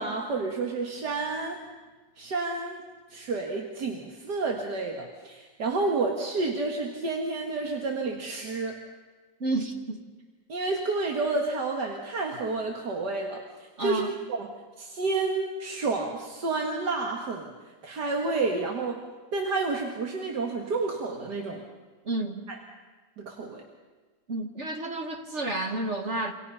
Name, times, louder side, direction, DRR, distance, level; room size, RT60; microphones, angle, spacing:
voice 1, 0.0-1.6 2.2-2.8 3.1-8.8 10.5-14.5 14.8-17.5 17.8-19.0 19.3-21.6 22.5-22.6 23.2-23.6, right 3 dB, 80° right, 1 dB, 2.5 m, -30 dB
voice 2, 9.4-10.1 13.8-14.2 22.0-22.5 24.3-26.3, right 2 dB, 45° right, 4 dB, 1.8 m, -31 dB
27.5 x 26.0 x 5.7 m, 1.3 s
omnidirectional pair, 1.8 m